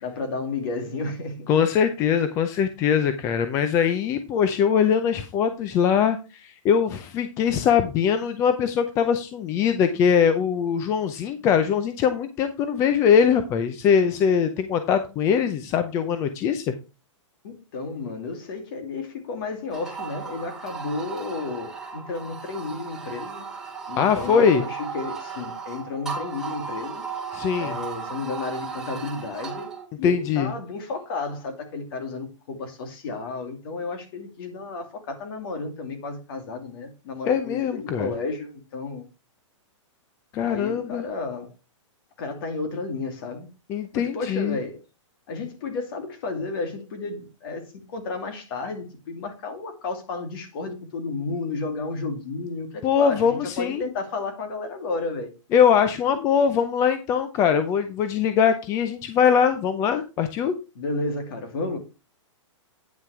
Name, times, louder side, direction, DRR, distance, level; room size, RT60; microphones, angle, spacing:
voice 1, 0.0-1.5 17.4-23.5 23.9-27.0 27.6-29.7 30.0-39.0 40.5-41.5 42.2-43.5 43.9-44.8 45.3-47.6 47.9-55.3 60.8-61.8, left 3 dB, 45° left, 2.5 m, -32 dB
voice 2, 1.5-16.6 23.9-24.7 27.3-27.8 30.0-30.5 37.3-38.1 40.3-41.1 43.7-44.6 52.8-53.8 55.5-60.5, left 7 dB, 20° left, 0.5 m, -22 dB
sound 1, 19.7-29.9, right 5 dB, 5° right, 2.2 m, -35 dB
9.4 x 5.7 x 4.7 m
hypercardioid pair, 160°, 16 cm